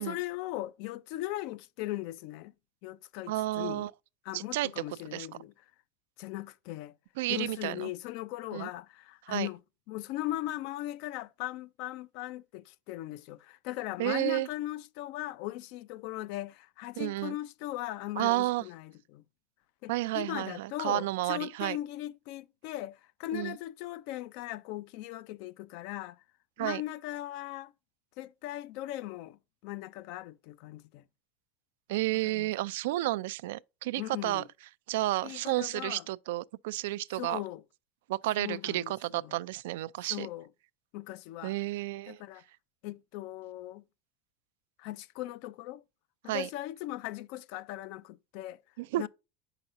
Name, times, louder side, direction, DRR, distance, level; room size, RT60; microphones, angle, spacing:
voice 1, 0.0-2.5 2.8-3.9 4.3-5.5 6.2-6.9 7.3-9.6 9.9-19.2 19.8-26.2 26.6-27.7 28.2-29.4 29.6-31.0 32.2-32.5 34.0-34.5 35.2-36.0 37.1-37.6 38.4-39.4 40.1-40.5 40.9-41.5 42.1-42.4 42.8-43.8 44.8-45.8 46.2-48.6 49.0-49.1, left 15 dB, 65° left, 0.4 m, -39 dB
voice 2, 3.3-3.9 4.3-4.7 5.1-5.3 7.2-7.9 8.5-8.7 9.3-9.5 14.0-14.5 17.0-17.4 18.2-18.6 19.9-21.8 23.3-23.6 26.6-26.8 31.9-34.4 34.9-37.4 38.1-40.3 41.4-42.2 46.3-46.5 48.8-49.1, right 17 dB, 85° right, 0.3 m, -31 dB
7.8 x 5.8 x 2.5 m
supercardioid pair, 135°, 0 cm